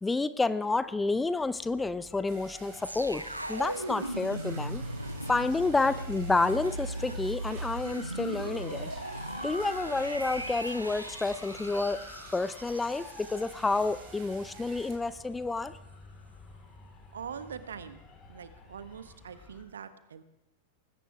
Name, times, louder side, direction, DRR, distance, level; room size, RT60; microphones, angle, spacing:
voice 1, 0.0-3.2 3.5-4.8 5.3-8.9 9.4-12.0 12.3-15.7, left 3 dB, 10° left, 15 dB, 0.6 m, -29 dB
sound 1, 0.8-19.6, left 3 dB, 25° left, 4.2 m, -50 dB
sound 2, 2.3-15.0, right 6 dB, 40° right, 4.3 m, -52 dB
sound 3, 2.8-14.0 14.4-14.5, right 1 dB, 85° right, 0.8 m, -38 dB
voice 2, 17.1-18.0 18.3-20.2, right 7 dB, 65° right, 12 dB, 1.1 m, -43 dB
20.0 x 16.5 x 3.5 m, 0.88 s
figure-of-eight pair, 90°, 0 cm